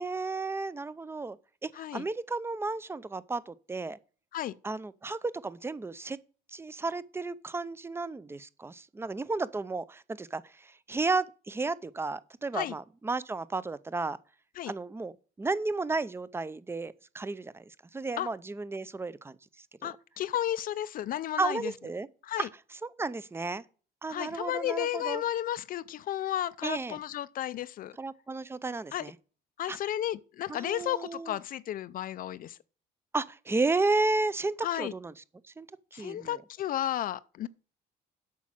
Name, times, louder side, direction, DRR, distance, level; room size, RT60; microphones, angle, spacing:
voice 1, 0.0-1.4 1.6-4.0 4.6-6.2 6.5-14.2 14.7-19.4 19.8-19.9 21.4-22.1 22.4-22.5 23.0-23.6 24.0-25.2 26.6-27.0 28.0-29.1 29.7-29.8 30.5-31.4 33.1-35.1 35.6-35.7 35.9-36.4, right 3 dB, 15° right, 0.6 m, -33 dB
voice 2, 19.8-21.7 22.2-22.5 24.1-27.9 28.9-29.1 29.6-32.6 34.6-34.9 35.9-37.5, left 12 dB, 55° left, 0.5 m, -33 dB
8.3 x 6.1 x 7.5 m
cardioid pair, 110°, 17 cm